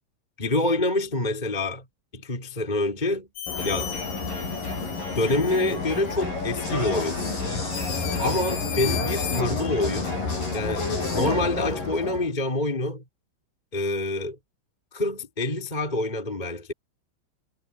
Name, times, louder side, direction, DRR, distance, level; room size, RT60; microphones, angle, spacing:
voice 1, 0.4-1.8 2.1-3.3 3.6-3.9 5.1-7.2 8.2-10.1 10.5-13.0 13.7-14.3 14.9-16.7, left 2 dB, 10° left, 3.1 m, -26 dB
sound 1, 3.4-6.2 7.0-7.1 7.7-9.4, left 10 dB, 85° left, 6.0 m, -36 dB
Crowd, 3.5-12.3, left 3 dB, 40° left, 8.9 m, -29 dB
omnidirectional pair, 5.9 m